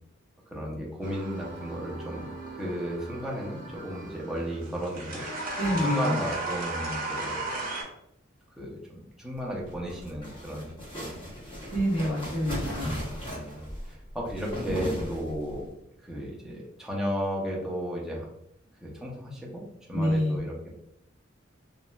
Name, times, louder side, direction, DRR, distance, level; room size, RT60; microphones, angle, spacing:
voice 1, 0.5-2.3 2.6-5.2 5.7-7.4 8.6-11.3 12.7-15.7 16.0-18.3 18.8-19.6 19.9-20.7, equal, 5° right, -4 dB, 0.6 m, -34 dB
sound 1, 1.0-7.8, right 2 dB, 45° right, 0.8 m, -35 dB
voice 2, 5.6-6.2 11.7-12.9 19.9-20.4, equal, 70° left, -5 dB, 1.2 m, -27 dB
sound 2, 9.6-15.6, equal, 25° left, 0.8 m, -37 dB
3.0 x 2.3 x 2.2 m, 0.78 s
head